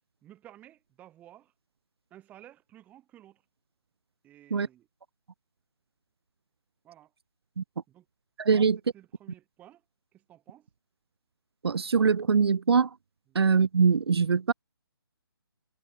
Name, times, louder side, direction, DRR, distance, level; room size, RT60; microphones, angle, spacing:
voice 1, 0.2-1.5 2.1-3.4 4.2-4.9 6.8-7.1 7.9-8.1 8.5-8.7 8.9-9.8 10.1-10.7 13.3-13.4, right 12 dB, 10° right, 3.0 m, -53 dB
voice 2, 8.4-8.8 11.6-12.9 13.3-14.5, right 5 dB, 85° right, 0.5 m, -23 dB
hypercardioid pair, 160°, 13 cm